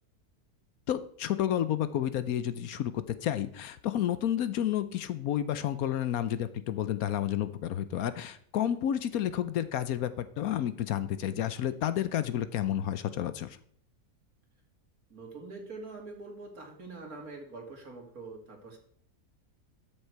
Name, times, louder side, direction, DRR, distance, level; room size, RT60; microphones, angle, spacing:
voice 1, 0.9-13.6, left 11 dB, 70° left, 13 dB, 1.1 m, -31 dB
voice 2, 15.1-18.8, right 3 dB, 65° right, 2 dB, 2.7 m, -44 dB
12.5 x 6.6 x 4.6 m, 0.64 s
omnidirectional pair, 1.7 m